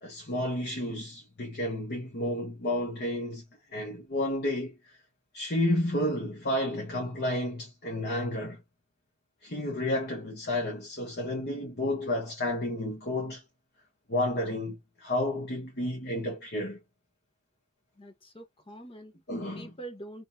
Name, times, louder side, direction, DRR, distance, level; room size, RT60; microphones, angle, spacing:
voice 1, 0.0-3.4 3.7-5.0 5.3-8.6 9.4-13.4 14.1-16.8 19.3-19.7, left 1 dB, 50° left, 1.4 m, -31 dB
voice 2, 18.0-19.2 19.6-20.3, right 2 dB, 25° left, 1.1 m, -45 dB
3.4 x 3.3 x 2.7 m
head